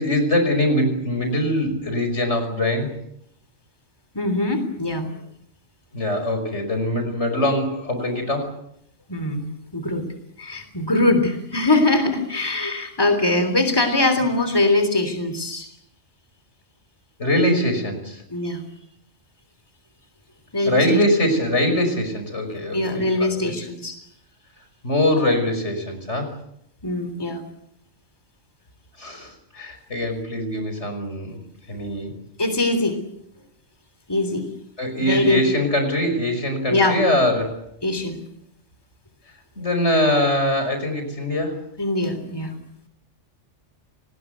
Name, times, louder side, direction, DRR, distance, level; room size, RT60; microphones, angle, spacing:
voice 1, 0.0-3.0 5.9-8.6 17.2-18.2 20.7-23.5 24.8-26.4 29.0-31.4 31.7-32.2 34.8-37.6 39.6-41.6, left 1 dB, 65° left, 7 dB, 5.9 m, -22 dB
voice 2, 4.1-5.1 9.1-9.5 9.7-10.1 10.4-15.7 18.3-18.6 20.5-21.0 22.7-24.0 26.8-27.4 32.4-33.0 34.1-34.4 34.9-35.4 36.7-37.0 37.8-38.2 41.8-42.5, left 2 dB, 20° left, 8 dB, 3.5 m, -22 dB
29.0 x 20.0 x 8.2 m, 0.76 s
omnidirectional pair, 1.3 m